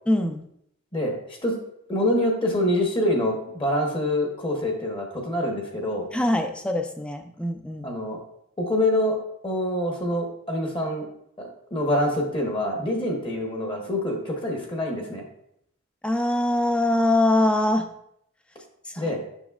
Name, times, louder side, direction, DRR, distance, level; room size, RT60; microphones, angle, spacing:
voice 1, 0.1-0.4 6.1-7.9 16.0-17.9 18.9-19.1, left 1 dB, 5° left, 5 dB, 0.4 m, -23 dB
voice 2, 1.9-6.1 7.8-8.2 8.6-9.2 9.4-11.1 11.4-15.2 19.0-19.2, left 1 dB, 25° left, 1 dB, 1.0 m, -25 dB
7.1 x 6.1 x 2.4 m, 0.73 s
head